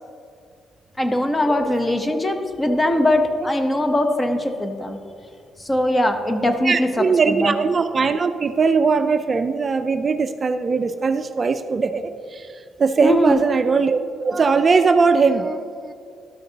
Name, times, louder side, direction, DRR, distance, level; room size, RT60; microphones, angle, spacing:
voice 1, 1.0-5.0 5.6-7.5 13.0-13.4, left 1 dB, 20° left, 7 dB, 0.8 m, -21 dB
voice 2, 6.6-15.9, right 4 dB, 40° right, 9 dB, 0.3 m, -20 dB
12.5 x 6.5 x 2.8 m, 2.4 s
cardioid pair, 90°, 0 cm